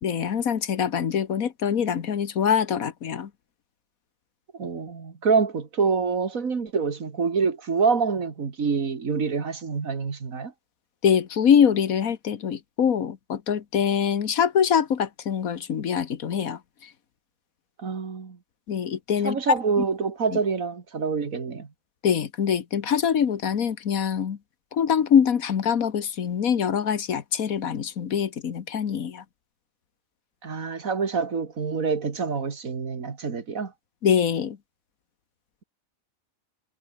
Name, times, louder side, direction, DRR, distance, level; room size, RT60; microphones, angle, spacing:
voice 1, 0.0-3.3 11.0-16.6 18.7-19.4 22.0-24.4 24.7-29.2 34.0-34.6, left 8 dB, 80° left, 1.7 m, -24 dB
voice 2, 4.6-10.5 17.8-18.4 19.2-21.7 30.4-33.7, right 5 dB, 75° right, 2.5 m, -26 dB
omnidirectional pair, 1.5 m